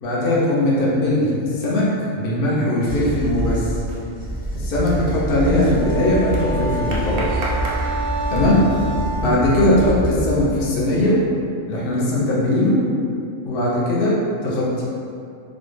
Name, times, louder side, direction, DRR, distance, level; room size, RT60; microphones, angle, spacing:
voice 1, 0.0-1.9 2.1-3.7 4.5-7.4 8.3-8.5 9.2-11.2 11.7-12.8 13.4-14.8, left 1 dB, 50° left, -5 dB, 0.8 m, -20 dB
sound 1, 2.2-2.6 3.0-8.7, right 1 dB, 55° right, 0.7 m, -35 dB
sound 2, 2.8-10.8 11.1-11.3, equal, 10° right, 0.5 m, -27 dB
Wind instrument woodwind instrument, 5.6-10.3, right 2 dB, 90° right, 1.1 m, -29 dB
4.2 x 2.3 x 3.2 m, 2.5 s
omnidirectional pair, 1.4 m